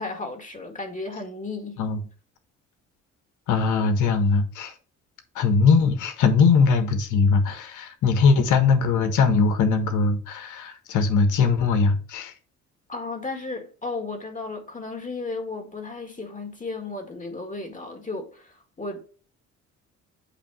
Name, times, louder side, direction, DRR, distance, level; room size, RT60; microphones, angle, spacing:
voice 1, 0.0-1.8 12.9-19.0, left 3 dB, 25° left, 1.9 m, -34 dB
voice 2, 3.5-4.7 5.3-12.3, left 5 dB, 80° left, 1.4 m, -20 dB
8.5 x 2.8 x 6.2 m
cardioid pair, 90°, 30 cm